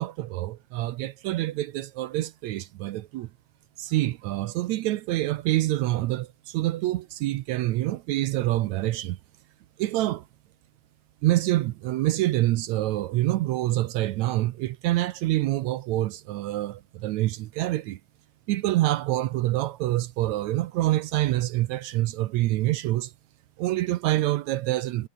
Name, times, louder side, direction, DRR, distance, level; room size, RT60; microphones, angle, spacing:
voice 1, 0.0-3.3 3.8-9.2 9.8-10.2 11.2-18.0 18.5-23.1 23.6-25.1, right 16 dB, 75° right, 1.8 m, -26 dB
omnidirectional pair, 3.8 m